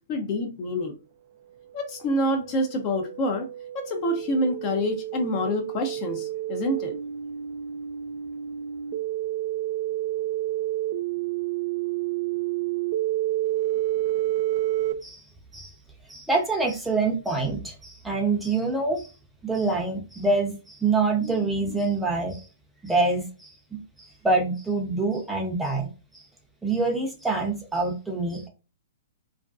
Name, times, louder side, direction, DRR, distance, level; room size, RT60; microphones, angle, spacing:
voice 1, 0.1-0.9 1.7-3.5 3.9-6.9, left 1 dB, 40° left, 0.6 m, -27 dB
sound 1, 1.7-14.9, right 14 dB, 50° right, 0.3 m, -30 dB
voice 2, 16.1-19.1 19.4-22.4 22.8-25.9 26.6-28.5, right 3 dB, 5° right, 0.6 m, -26 dB
2.4 x 2.2 x 2.4 m
hypercardioid pair, 120°, 0 cm